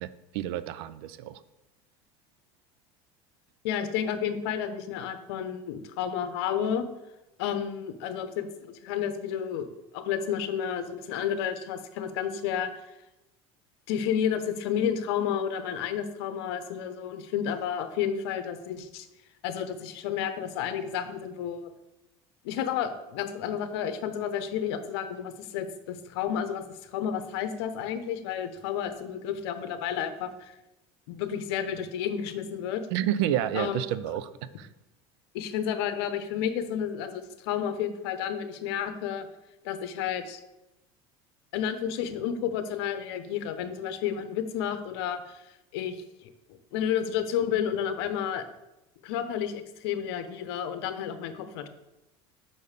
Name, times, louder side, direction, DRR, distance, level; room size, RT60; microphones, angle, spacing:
voice 1, 0.0-1.4 32.9-34.7, right 11 dB, 80° right, 15 dB, 0.5 m, -30 dB
voice 2, 3.6-6.9 7.4-12.8 13.9-19.1 19.4-21.7 22.4-30.6 31.1-32.9 33.5-33.8 35.3-39.3 39.6-40.4 41.5-46.0 46.2-46.3 46.7-48.5 49.0-51.7, left 8 dB, 80° left, 10 dB, 0.9 m, -31 dB
5.6 x 5.4 x 6.6 m, 0.95 s
supercardioid pair, 120°, 13 cm